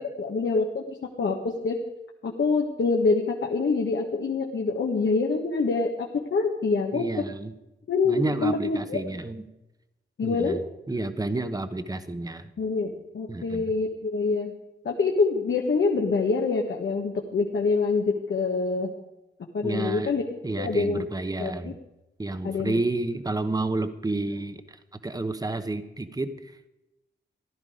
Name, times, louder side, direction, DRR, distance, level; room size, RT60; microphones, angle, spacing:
voice 1, 0.0-1.8 2.2-7.2 7.9-9.0 10.2-10.6 12.6-14.5 14.8-18.9 19.5-20.2 20.6-21.0 21.4-21.7 22.4-22.8, left 4 dB, 70° left, 0 dB, 1.5 m, -26 dB
voice 2, 6.9-7.5 8.0-9.5 10.2-12.5 13.3-13.7 19.6-20.1 20.4-21.8 22.2-26.7, right 2 dB, 20° right, 10 dB, 0.9 m, -30 dB
15.5 x 12.5 x 5.0 m, 0.93 s
wide cardioid pair, 135°, 20 cm